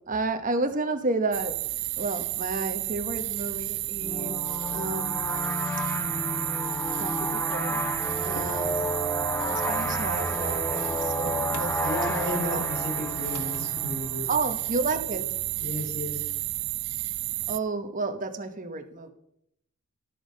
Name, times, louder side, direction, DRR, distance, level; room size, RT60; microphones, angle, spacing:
voice 1, 0.0-1.5 2.0-4.4 4.7-5.7 7.0-7.9 8.2-8.9 9.5-12.6 14.3-15.2 17.5-19.1, right 3 dB, 35° right, 7 dB, 0.9 m, -31 dB
sound 1, 1.3-17.6, right 18 dB, 55° right, 0.4 m, -31 dB
sound 2, 4.0-14.4, equal, 10° left, 0.6 m, -31 dB
sound 3, 7.7-14.2, left 2 dB, 65° left, 1.1 m, -45 dB
voice 2, 11.8-14.3 15.6-16.2, left 1 dB, 45° left, -1 dB, 4.9 m, -33 dB
11.0 x 7.0 x 5.2 m, 0.78 s
head